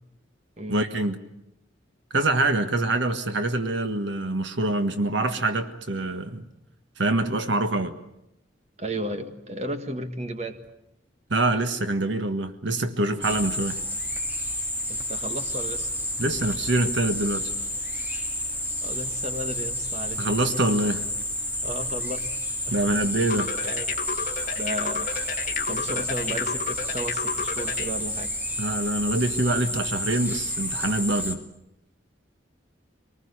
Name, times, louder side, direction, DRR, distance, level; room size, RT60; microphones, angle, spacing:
voice 1, 0.7-1.2 2.1-6.5 7.0-8.0 11.3-13.8 16.2-17.5 20.2-21.1 22.7-23.5 28.6-31.4, right 2 dB, 75° right, 8 dB, 1.6 m, -25 dB
voice 2, 8.8-10.6 14.9-15.9 18.8-20.3 21.6-22.3 22.7-22.9 23.6-23.9 24.6-28.3, right 1 dB, 35° right, 7 dB, 1.7 m, -34 dB
sound 1, 13.2-31.3, left 1 dB, 10° right, 2.2 m, -30 dB
sound 2, 23.3-27.9, left 5 dB, 40° left, 1.8 m, -31 dB
24.5 x 19.5 x 9.8 m, 0.85 s
head